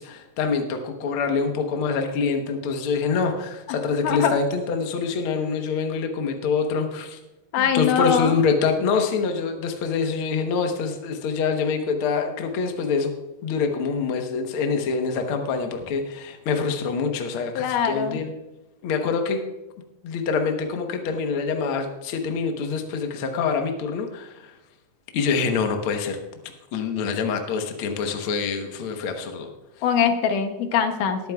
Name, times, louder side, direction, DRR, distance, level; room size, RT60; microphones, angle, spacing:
voice 1, 0.0-7.2 7.6-13.1 13.4-18.3 18.8-19.4 20.0-24.5 25.1-26.2 26.7-29.5, left 5 dB, 65° left, 5 dB, 1.4 m, -25 dB
voice 2, 7.5-8.3 17.6-18.2 29.8-31.3, left 7 dB, 80° left, 7 dB, 2.4 m, -22 dB
20.0 x 9.2 x 2.3 m, 1.0 s
omnidirectional pair, 3.8 m